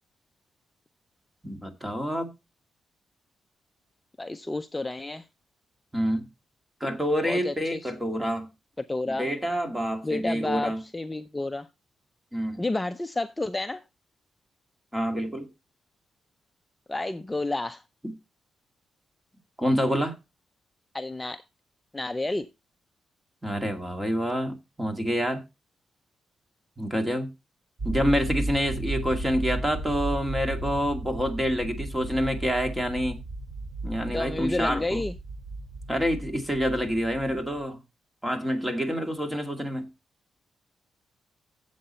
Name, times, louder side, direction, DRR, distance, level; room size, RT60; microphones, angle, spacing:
voice 1, 1.4-2.3 5.9-6.3 6.8-8.5 9.1-10.8 12.3-12.6 14.9-15.5 18.0-18.1 19.6-20.2 23.4-25.4 26.8-27.3 27.8-33.2 33.8-35.0 35.9-37.8 38.2-39.9, equal, 10° right, 2.2 m, -27 dB
voice 2, 4.2-5.3 7.2-7.9 8.8-9.3 10.0-11.7 12.6-13.8 16.9-17.8 20.9-21.4 21.9-22.5 34.1-35.1, left 2 dB, 15° left, 0.5 m, -30 dB
sound 1, 27.8-37.6, right 2 dB, 40° right, 4.8 m, -34 dB
11.5 x 7.9 x 4.3 m
cardioid pair, 130°, 0 cm